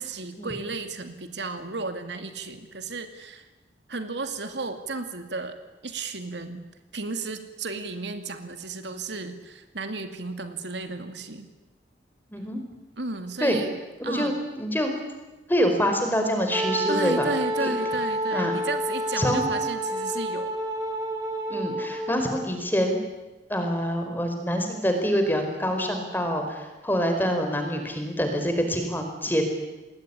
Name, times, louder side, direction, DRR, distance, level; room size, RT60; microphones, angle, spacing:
voice 1, 0.0-3.5 3.9-5.6 5.8-6.6 6.9-11.5 13.0-13.8 14.0-14.3 16.9-20.5, right 3 dB, 75° right, 8 dB, 2.4 m, -33 dB
voice 2, 14.0-14.9 15.5-17.3 17.6-17.7 18.3-18.5 19.2-19.5 21.5-23.0 23.5-29.5, equal, 10° left, 5 dB, 4.7 m, -26 dB
Wind instrument woodwind instrument, 16.5-22.5, right 1 dB, 20° right, 4.7 m, -29 dB
29.0 x 20.5 x 9.9 m, 1.1 s
head